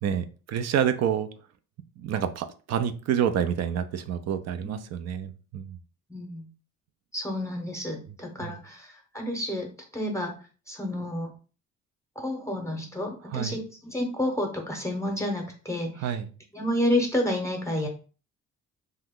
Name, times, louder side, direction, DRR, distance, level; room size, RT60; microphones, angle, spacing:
voice 1, 0.0-1.3 2.0-5.8 8.4-8.6 13.3-13.6 16.0-16.3, right 9 dB, 60° right, 10 dB, 0.4 m, -28 dB
voice 2, 6.1-6.5 7.1-10.3 10.7-11.4 12.2-16.0 16.5-17.9, left 1 dB, 10° left, 1 dB, 0.7 m, -30 dB
2.8 x 2.2 x 3.5 m, 0.36 s
cardioid pair, 90°, 30 cm